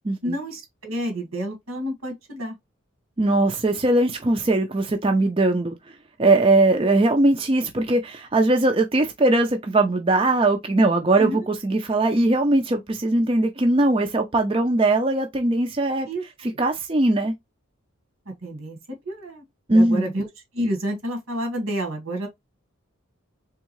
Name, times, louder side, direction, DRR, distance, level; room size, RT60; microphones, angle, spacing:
voice 1, 0.2-2.6 11.2-11.5 16.1-16.2 18.3-18.8 19.1-19.4 19.7-20.3 20.5-22.3, equal, 85° right, 1.8 m, -29 dB
voice 2, 3.2-5.8 6.2-16.1 16.6-17.3 19.7-20.1, right 2 dB, 25° right, 0.4 m, -20 dB
3.6 x 3.5 x 3.1 m
head